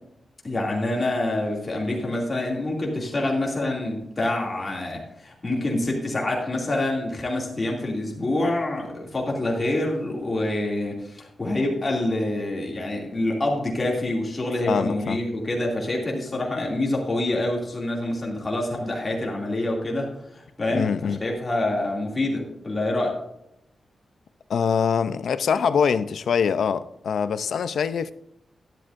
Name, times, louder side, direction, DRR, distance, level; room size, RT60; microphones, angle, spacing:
voice 1, 0.4-23.2, left 1 dB, 25° left, 2.5 m, -26 dB
voice 2, 14.7-15.2 20.7-21.2 24.5-28.1, left 6 dB, 70° left, 0.5 m, -24 dB
12.0 x 11.5 x 2.6 m
wide cardioid pair, 180°, 0 cm